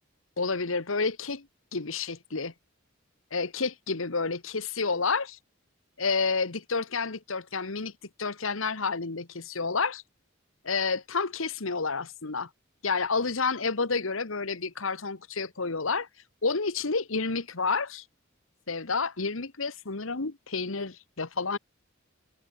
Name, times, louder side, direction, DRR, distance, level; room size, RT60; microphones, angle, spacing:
voice 1, 0.4-1.5 1.7-2.5 3.3-5.4 6.0-7.9 8.2-10.0 10.6-12.5 12.8-16.1 16.4-18.0 18.7-21.6, left 4 dB, 75° left, 1.5 m, -30 dB
head